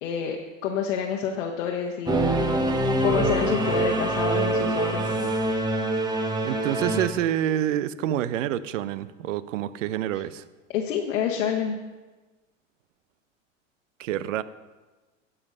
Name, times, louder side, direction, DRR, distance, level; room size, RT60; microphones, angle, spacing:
voice 1, 0.0-0.4 0.6-2.5 3.0-5.2 10.7-11.8, left 7 dB, 70° left, 1 dB, 1.1 m, -28 dB
Singing / Musical instrument, 2.1-7.1, right 1 dB, 10° right, 1.1 m, -24 dB
voice 2, 6.4-10.4 14.0-14.4, right 11 dB, 70° right, 16 dB, 0.6 m, -27 dB
11.5 x 5.6 x 5.4 m, 1.2 s
hypercardioid pair, 95°, 39 cm